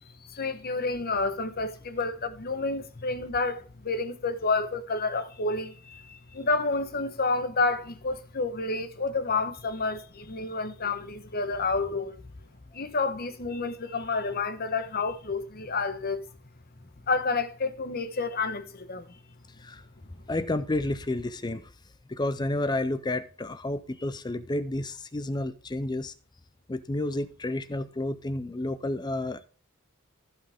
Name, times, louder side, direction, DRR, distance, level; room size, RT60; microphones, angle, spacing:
voice 1, 0.2-12.2 12.7-16.2 17.1-19.2, left 3 dB, 45° left, 1.1 m, -29 dB
voice 2, 20.3-21.7 22.1-26.1 26.7-29.4, left 2 dB, 20° left, 0.5 m, -30 dB
15.0 x 5.6 x 3.5 m
head